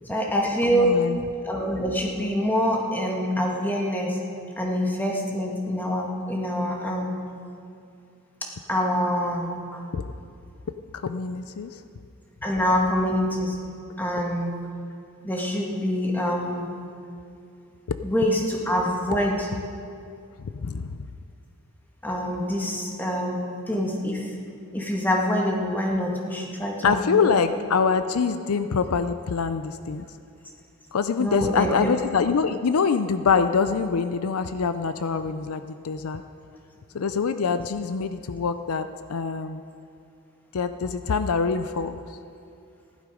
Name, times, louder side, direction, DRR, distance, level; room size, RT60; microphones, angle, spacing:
voice 1, 0.1-1.1 1.4-4.2 4.6-7.2 8.4-9.8 12.4-13.6 14.0-14.6 15.2-16.8 18.0-19.5 22.0-24.3 24.7-27.3 31.2-31.9, equal, 10° left, -1 dB, 1.7 m, -25 dB
voice 2, 0.6-1.2 9.9-10.0 11.0-11.7 20.4-21.0 26.8-30.1 30.9-36.2 36.9-39.6 40.5-42.0, left 5 dB, 70° left, 10 dB, 0.5 m, -25 dB
16.0 x 11.5 x 5.0 m, 2.5 s
head